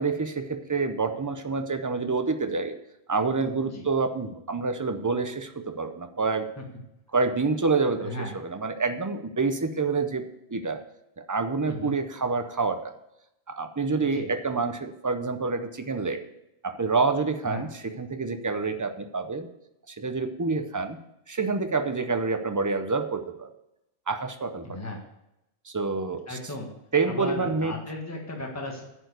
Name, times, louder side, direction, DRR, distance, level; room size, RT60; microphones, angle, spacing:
voice 1, 0.0-2.8 3.1-6.5 7.1-10.2 10.5-10.8 11.2-13.0 13.5-16.2 16.6-19.5 19.9-21.0 21.3-23.5 24.1-24.8 25.7-26.4 26.9-27.7, right 4 dB, 25° right, 9 dB, 0.5 m, -27 dB
voice 2, 8.0-8.3 11.7-11.9 13.9-14.3 17.4-17.7 24.6-25.0 26.3-26.7 27.1-28.8, left 1 dB, 15° left, 0 dB, 1.5 m, -36 dB
10.5 x 4.6 x 8.1 m, 0.86 s
omnidirectional pair, 1.1 m